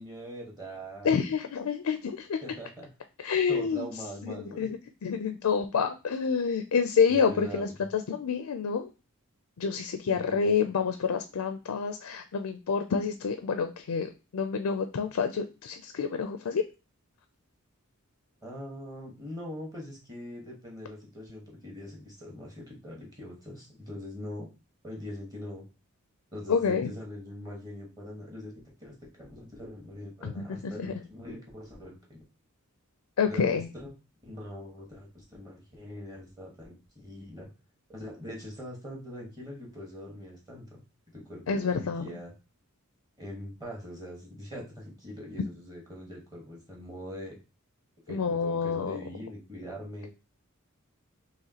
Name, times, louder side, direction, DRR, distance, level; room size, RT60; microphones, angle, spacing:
voice 1, 0.0-1.1 2.4-2.9 3.5-4.7 7.3-7.8 10.1-10.3 18.4-24.5 24.8-25.6 26.3-32.2 33.3-33.9 34.2-37.5 37.9-40.8 41.1-42.3 43.2-47.3 48.1-50.1, equal, 20° right, -2 dB, 1.3 m, -42 dB
voice 2, 1.0-2.4 3.2-3.9 4.2-8.9 9.6-16.6 26.5-26.9 30.2-30.9 33.2-33.7 41.5-42.1 48.1-49.0, left 6 dB, 80° left, 8 dB, 0.4 m, -28 dB
4.8 x 3.0 x 2.9 m, 0.30 s
head